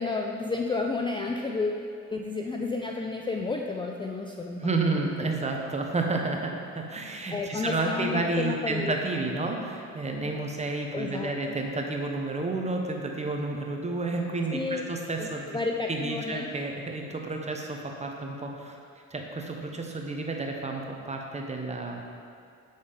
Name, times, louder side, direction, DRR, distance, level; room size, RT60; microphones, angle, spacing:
voice 1, 0.0-5.3 7.3-8.9 10.9-11.6 14.5-14.8 15.2-16.5, left 3 dB, 15° left, 1 dB, 0.4 m, -31 dB
voice 2, 4.6-15.4 15.9-18.8 19.1-22.0, right 3 dB, 20° right, 1 dB, 0.8 m, -31 dB
7.1 x 4.0 x 5.0 m, 2.4 s
cardioid pair, 90°, 30 cm